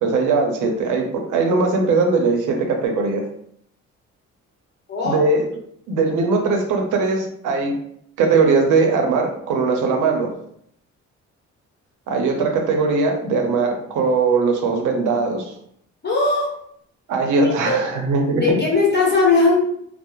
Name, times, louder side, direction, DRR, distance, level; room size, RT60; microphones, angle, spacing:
voice 1, 0.0-3.2 5.0-5.5 5.9-7.8 8.2-10.3 12.1-15.5 17.1-18.6, right 4 dB, 80° right, 3 dB, 0.6 m, -20 dB
voice 2, 4.9-5.2 16.0-16.5 17.4-17.8 18.4-19.6, left 3 dB, 35° left, -4 dB, 1.0 m, -18 dB
2.9 x 2.0 x 2.3 m, 0.69 s
cardioid pair, 90°, 30 cm